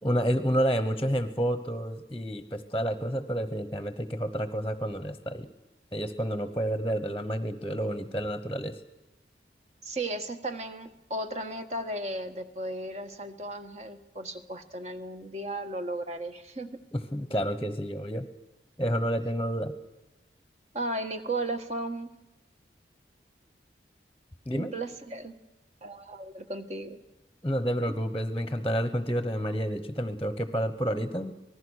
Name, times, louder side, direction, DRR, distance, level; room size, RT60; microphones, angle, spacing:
voice 1, 0.0-5.5 5.9-8.8 16.9-18.3 18.8-19.7 24.5-24.7 27.4-31.3, equal, 15° left, 11 dB, 1.1 m, -29 dB
voice 2, 9.8-16.7 20.7-22.1 24.5-25.3 25.8-27.0, right 1 dB, 35° right, 7 dB, 1.5 m, -35 dB
26.0 x 19.5 x 6.5 m, 1.0 s
head